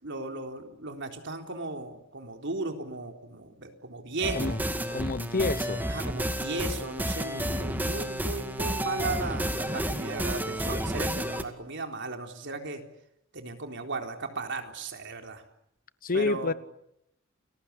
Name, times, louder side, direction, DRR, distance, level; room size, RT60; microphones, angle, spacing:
voice 1, 0.0-4.6 5.9-12.8 13.3-15.4 16.1-16.5, right 3 dB, 60° right, 3.9 m, -36 dB
sound 1, 4.2-11.4, equal, 10° right, 2.2 m, -31 dB
voice 2, 4.9-5.9 16.0-16.5, left 3 dB, 45° left, 1.0 m, -28 dB
29.5 x 21.0 x 8.5 m
head